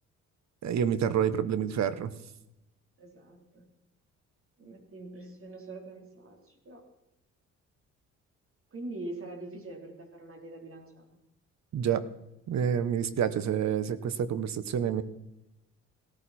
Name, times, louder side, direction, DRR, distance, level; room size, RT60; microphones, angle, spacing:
voice 1, 0.6-2.1 11.7-12.1 12.5-15.0, right 8 dB, 65° right, 14 dB, 1.2 m, -28 dB
voice 2, 3.0-3.7 4.6-6.8 8.7-11.1, right 2 dB, 45° right, 3 dB, 3.8 m, -43 dB
17.0 x 14.0 x 4.3 m, 0.90 s
cardioid pair, 90°, 30 cm